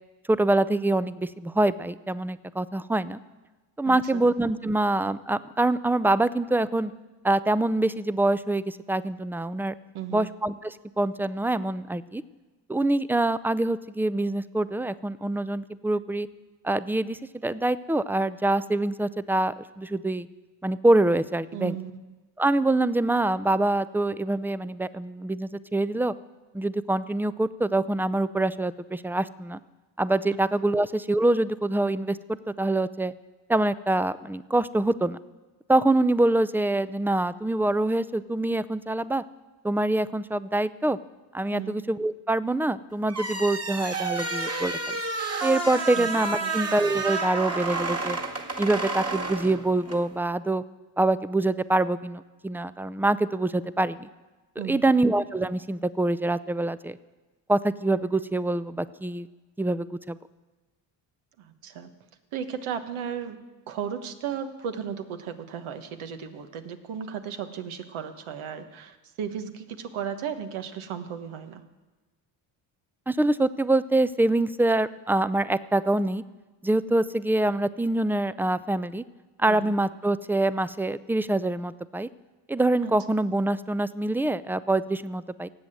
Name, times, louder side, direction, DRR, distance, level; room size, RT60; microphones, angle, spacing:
voice 1, 0.3-3.2 3.8-6.9 7.2-9.7 10.1-12.2 12.7-16.3 16.6-20.3 20.6-21.8 22.4-26.1 26.5-29.6 30.0-32.2 32.5-33.1 33.5-35.2 35.7-39.2 39.6-41.0 41.3-45.0 45.4-48.2 48.6-50.6 51.0-54.1 54.6-57.0 57.5-59.3 59.6-60.2 73.1-76.2 76.6-79.0 79.4-82.1 82.5-85.5, right 2 dB, 5° right, 16 dB, 0.5 m, -25 dB
voice 2, 9.9-10.3 21.5-22.0 41.5-41.8 46.0-46.1 46.4-46.5 54.6-54.9 61.4-61.9 62.3-63.4 63.7-71.6 79.5-79.7 82.8-82.9, right 8 dB, 75° right, 8 dB, 1.4 m, -35 dB
sound 1, 43.1-50.1, right 3 dB, 30° right, 2.0 m, -30 dB
18.0 x 8.0 x 7.8 m, 1.2 s
supercardioid pair, 60°, 49 cm